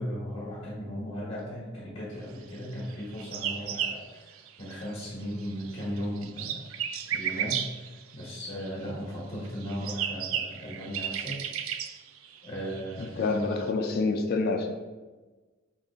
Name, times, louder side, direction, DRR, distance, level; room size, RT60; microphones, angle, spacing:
voice 1, 0.0-6.6 7.1-11.5 12.4-13.6, equal, 30° left, -9 dB, 1.4 m, -36 dB
sound 1, 2.8-5.0 5.3-8.9 9.4-13.7, right 9 dB, 80° right, 0.3 m, -34 dB
voice 2, 13.0-14.7, left 3 dB, 50° left, 4 dB, 0.4 m, -28 dB
5.4 x 2.4 x 3.5 m, 1.3 s
head